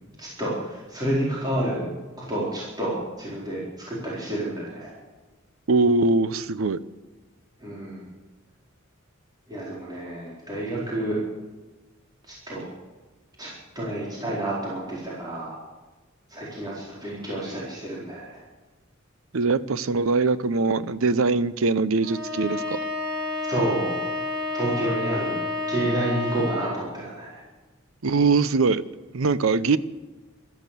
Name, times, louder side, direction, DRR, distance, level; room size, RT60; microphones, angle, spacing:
voice 1, 0.2-1.9 2.2-4.9 7.6-8.1 9.5-11.2 12.3-12.6 13.4-13.5 13.7-15.6 16.3-18.4 23.5-23.9 24.5-25.4 25.7-27.4, right 1 dB, 20° right, -7 dB, 4.5 m, -29 dB
voice 2, 5.7-6.8 19.3-22.8 28.0-28.8 29.1-29.8, right 3 dB, 80° right, 16 dB, 0.7 m, -22 dB
Bowed string instrument, 22.0-26.9, left 2 dB, 55° right, 5.9 m, -30 dB
15.0 x 13.5 x 6.9 m, 1.2 s
head